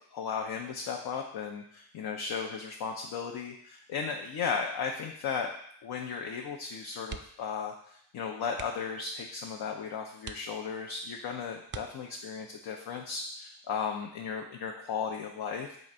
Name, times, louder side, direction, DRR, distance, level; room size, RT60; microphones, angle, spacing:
voice 1, 0.1-5.5 5.8-15.8, left 6 dB, 60° left, 2 dB, 0.6 m, -35 dB
sound 1, 7.0-7.6 7.9-8.0 8.5-9.0 9.6-9.7 10.2-11.0 11.6-12.4 14.0-14.3 14.7-14.8, right 6 dB, 30° right, 0.4 m, -45 dB
3.8 x 2.6 x 4.2 m, 0.69 s
supercardioid pair, 40°, 43 cm